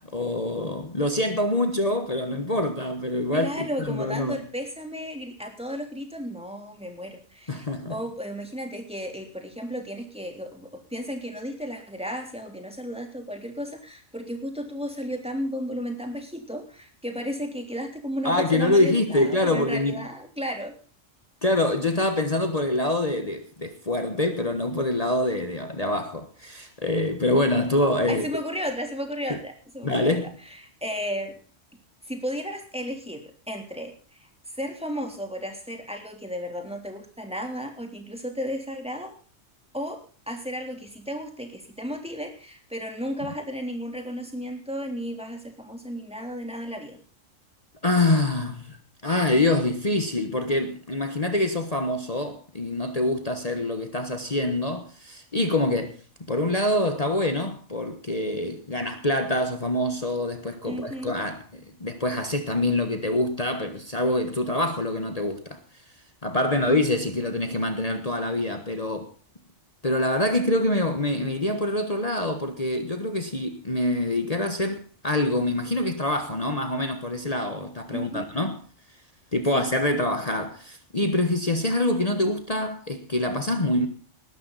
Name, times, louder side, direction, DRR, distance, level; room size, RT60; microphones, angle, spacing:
voice 1, 0.0-4.4 7.5-8.0 18.2-20.0 21.4-28.3 29.8-30.3 47.8-48.8 49.0-56.0 56.3-65.6 66.2-69.1 69.8-78.6 79.3-83.9, left 1 dB, 30° left, 1.4 m, -25 dB
voice 2, 3.3-20.7 28.1-30.2 30.4-31.3 32.1-39.1 39.7-47.0 60.7-61.2 66.5-66.6 77.9-78.3 79.5-79.6, equal, 5° right, 3.3 m, -34 dB
19.5 x 12.5 x 4.1 m
omnidirectional pair, 1.3 m